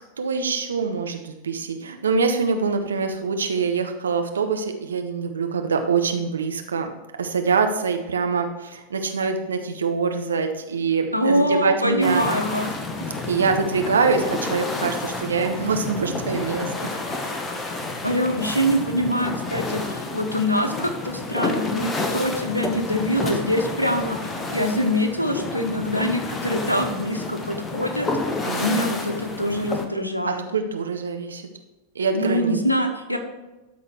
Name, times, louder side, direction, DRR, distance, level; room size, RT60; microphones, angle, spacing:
voice 1, 0.2-6.9 7.2-12.3 13.3-16.7 17.3-17.4 28.4-28.8 30.5-31.5 31.9-32.6, right 5 dB, 70° right, 6 dB, 0.9 m, -24 dB
voice 2, 11.1-12.7 13.0-13.1 18.0-24.2 24.5-28.2 28.6-30.4 32.1-33.2, equal, 90° left, 5 dB, 1.0 m, -24 dB
sound 1, 12.0-29.9, left 3 dB, 20° left, 1.0 m, -30 dB
12.5 x 4.3 x 4.5 m, 1.1 s
figure-of-eight pair, 90°, 0 cm